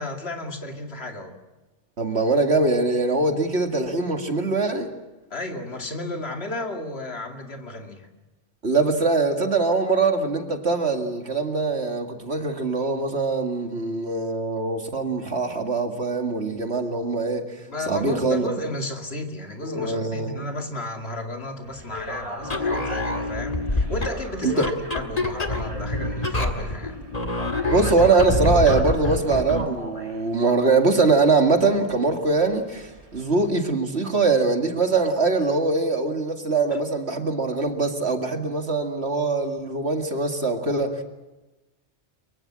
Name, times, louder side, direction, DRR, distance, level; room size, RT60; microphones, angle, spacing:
voice 1, 0.0-1.4 5.3-8.1 17.7-27.0 36.7-36.8, left 1 dB, 55° left, 3 dB, 2.7 m, -33 dB
voice 2, 2.0-4.9 8.6-17.5 17.9-18.5 19.6-20.5 24.4-24.7 27.7-41.0, right 3 dB, 60° right, 4 dB, 2.5 m, -22 dB
sound 1, 21.6-33.5, right 1 dB, 30° right, 1.9 m, -40 dB
sound 2, 22.4-29.8, left 2 dB, 30° left, 1.9 m, -27 dB
24.0 x 23.5 x 7.6 m, 1.1 s
omnidirectional pair, 1.3 m